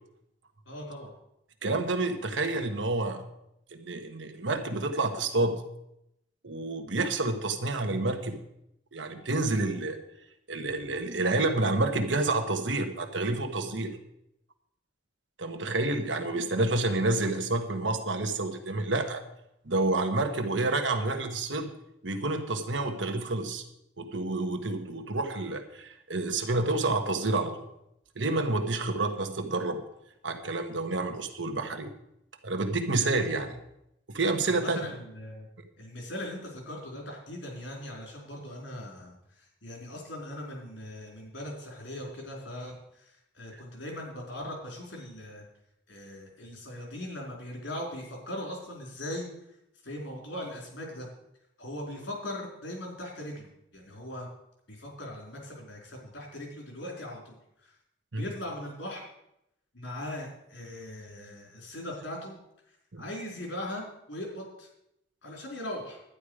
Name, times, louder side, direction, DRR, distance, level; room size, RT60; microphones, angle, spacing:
voice 1, 0.6-1.1 34.5-35.5 35.8-45.4 45.9-49.3 49.8-51.1 51.6-54.3 54.7-57.4 57.6-57.8 58.2-59.1 59.7-62.4 62.7-64.7 65.2-66.0, left 1 dB, 85° left, -1 dB, 4.6 m, -40 dB
voice 2, 1.6-3.2 3.7-5.6 6.4-8.4 8.9-10.0 10.5-13.9 15.4-19.2 19.6-21.7 22.0-23.6 24.0-27.6 28.1-29.8 30.2-31.9 32.4-33.6 34.1-34.8 58.1-58.2 62.9-63.0, right 2 dB, 80° right, 5 dB, 1.4 m, -29 dB
11.5 x 10.0 x 5.0 m, 0.80 s
head